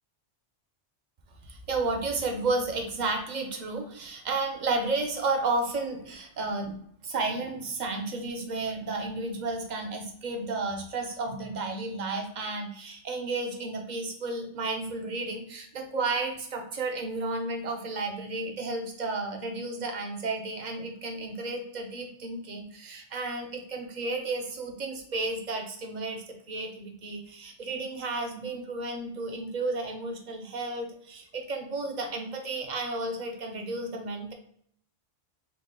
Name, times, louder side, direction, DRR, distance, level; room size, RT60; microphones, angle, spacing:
voice 1, 1.4-6.8 7.0-34.3, right 3 dB, 45° right, 3 dB, 0.7 m, -32 dB
4.0 x 2.2 x 3.6 m, 0.66 s
omnidirectional pair, 1.2 m